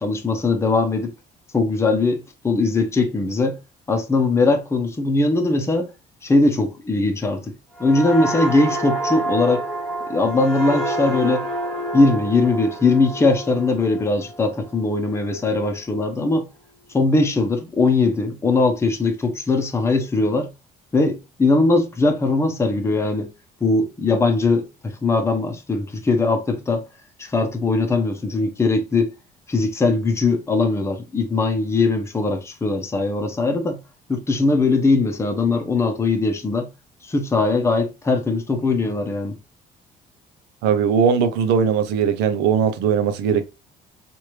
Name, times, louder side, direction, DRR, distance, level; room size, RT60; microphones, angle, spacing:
voice 1, 0.0-1.1 1.5-3.6 3.9-5.9 6.2-7.5 7.8-9.6 10.1-11.5 11.9-16.5 16.9-20.5 20.9-23.3 23.6-26.8 27.2-29.1 29.5-33.8 34.1-36.7 37.0-39.4, left 3 dB, 15° left, 0.7 m, -20 dB
sound 1, 7.8-15.2 15.6-15.9, right 1 dB, ahead, 1.3 m, -28 dB
voice 2, 40.6-43.4, right 7 dB, 90° right, 0.5 m, -19 dB
3.2 x 2.5 x 3.0 m
cardioid pair, 110°, 17 cm